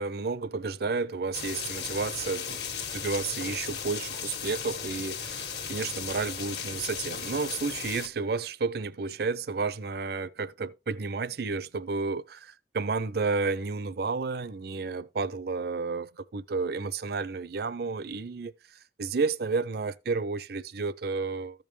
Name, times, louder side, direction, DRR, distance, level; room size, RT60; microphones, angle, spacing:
voice 1, 0.0-2.6 2.9-18.5 19.0-21.6, right 4 dB, 60° right, 0.5 m, -31 dB
sound 1, 1.3-8.1, left 7 dB, 65° left, 1.5 m, -36 dB
14.5 x 5.3 x 3.2 m
head